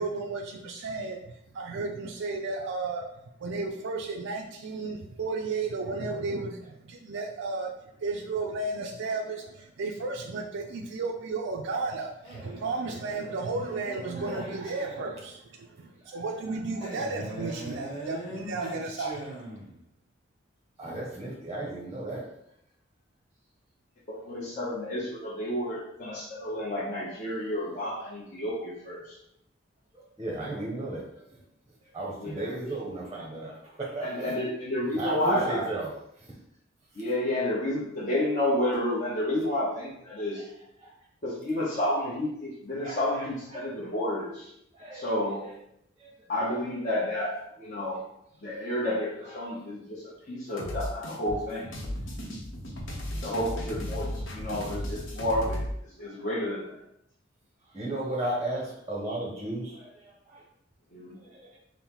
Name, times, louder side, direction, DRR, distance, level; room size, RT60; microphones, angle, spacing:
voice 1, 0.0-3.0 3.4-7.7 8.0-19.2, right 3 dB, 65° right, 0 dB, 0.4 m, -33 dB
Male speech man speaking, 12.2-15.2 16.8-19.8, right 1 dB, 25° left, 1.2 m, -41 dB
voice 2, 14.1-14.8 16.0-16.5 16.9-17.0 20.8-22.3 29.9-31.4 31.9-34.3 34.9-36.3 40.1-40.5 40.8-40.9 42.8-43.9 44.7-45.1 45.4-45.5 46.0-46.1 46.9-47.0 49.2-49.3 50.3-50.4 53.2-53.4 56.0-56.2 57.7-60.4 61.1-61.6, right 2 dB, 20° right, -3 dB, 0.7 m, -36 dB
voice 3, 24.1-29.1 32.2-32.5 34.0-35.6 36.9-40.4 41.2-44.5 44.9-45.4 46.3-47.3 47.6-48.0 48.4-51.6 53.2-55.6 56.0-56.8 60.9-61.2, left 1 dB, 40° left, -9 dB, 0.9 m, -30 dB
sound 1, 50.6-55.7, equal, 75° left, 0.9 m, -35 dB
5.4 x 2.1 x 3.0 m, 0.76 s
head